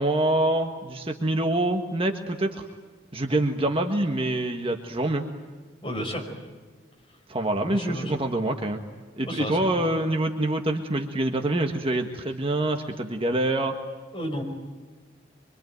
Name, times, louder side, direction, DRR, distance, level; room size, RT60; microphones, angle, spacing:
voice 1, 0.0-2.7 3.1-5.2 7.3-8.9 9.2-13.8, right 1 dB, 30° right, 4 dB, 1.5 m, -26 dB
voice 2, 5.8-6.3 7.7-8.1 9.3-9.6 14.1-14.4, equal, 25° left, 1 dB, 5.9 m, -31 dB
25.5 x 24.5 x 9.4 m, 1.4 s
head